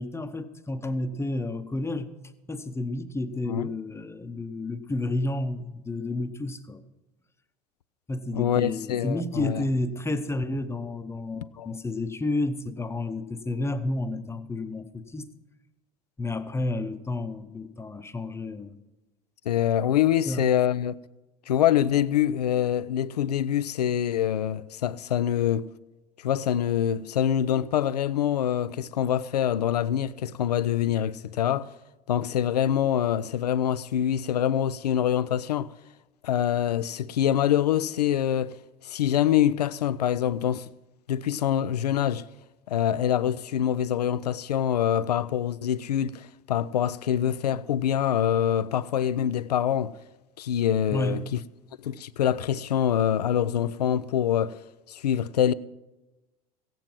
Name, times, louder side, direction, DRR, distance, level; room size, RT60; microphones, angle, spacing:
voice 1, 0.0-2.1 2.5-6.8 8.1-15.3 16.2-18.8 20.3-20.4 50.9-51.3, left 2 dB, 15° left, 0.8 m, -31 dB
voice 2, 8.3-9.7 11.6-11.7 19.5-21.0 21.5-25.7 26.2-31.7 32.1-35.7 36.2-38.6 38.8-40.7 41.1-42.3 42.7-49.9 50.4-51.4 51.8-54.6 54.9-55.5, left 10 dB, 85° left, 0.4 m, -25 dB
15.0 x 9.1 x 5.9 m
hypercardioid pair, 75°, 20 cm